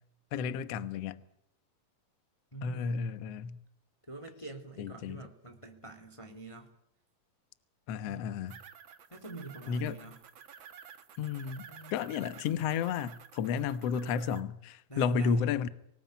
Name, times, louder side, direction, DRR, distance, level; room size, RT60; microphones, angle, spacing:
voice 1, 0.3-1.2 2.6-3.6 4.8-5.2 7.9-8.6 9.7-10.0 11.2-11.6 11.9-15.7, left 6 dB, 70° left, 1.5 m, -32 dB
voice 2, 2.5-3.0 4.1-6.7 8.0-8.4 9.1-10.2 11.7-12.2 14.9-15.4, right 3 dB, 10° left, 1.9 m, -46 dB
sound 1, 8.5-14.4, right 7 dB, 70° right, 1.1 m, -52 dB
25.0 x 19.0 x 9.4 m
omnidirectional pair, 4.6 m